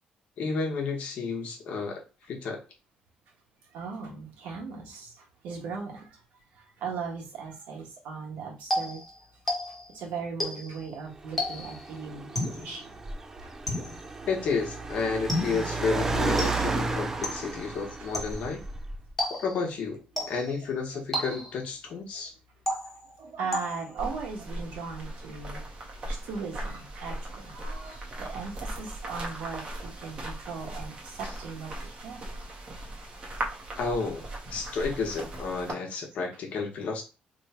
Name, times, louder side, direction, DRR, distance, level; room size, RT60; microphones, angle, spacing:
voice 1, 0.4-2.6 14.3-18.6 19.3-20.0 20.3-22.3 33.8-34.2 34.5-37.0, left 4 dB, 55° left, 2 dB, 1.0 m, -31 dB
voice 2, 3.6-9.0 9.7-13.6 20.1-20.3 20.9-21.3 21.9-22.3 23.0-25.6 26.1-32.4, right 5 dB, 75° right, -1 dB, 1.3 m, -39 dB
sound 1, 8.7-10.0 10.4-10.8 11.4-11.9 12.4-12.8 13.7-14.1 15.3-15.8 16.4-16.8 17.2-17.6 18.1-18.5 19.2-19.7 20.2-20.6 21.1-21.7 22.7-23.2 23.5-24.0, left 1 dB, 5° left, 1.1 m, -32 dB
Car, 11.2-19.1, right 3 dB, 15° right, 0.3 m, -33 dB
sound 2, 24.0-35.7, right 1 dB, 35° right, 0.9 m, -38 dB
3.1 x 2.2 x 4.2 m, 0.30 s
cardioid pair, 155°, 3 cm